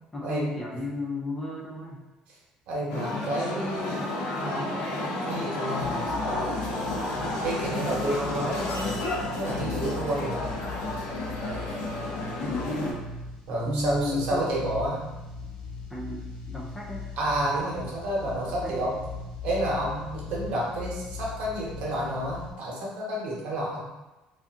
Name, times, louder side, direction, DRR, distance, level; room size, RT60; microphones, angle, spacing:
voice 1, 0.1-2.0 12.4-13.0 13.6-14.5 15.9-17.1 18.6-18.9, left 2 dB, 15° left, -2 dB, 0.3 m, -33 dB
voice 2, 2.7-4.0 4.3-4.8 5.2-6.4 7.4-8.9 9.2-10.4 13.5-15.0 17.2-19.0 19.4-23.9, right 1 dB, 60° right, -4 dB, 0.9 m, -30 dB
sound 1, 2.9-12.9, left 2 dB, 80° left, 0.7 m, -31 dB
sound 2, 5.8-22.5, left 3 dB, 45° left, 0.8 m, -39 dB
2.6 x 2.4 x 3.4 m, 1.1 s
cardioid pair, 175°, 2 cm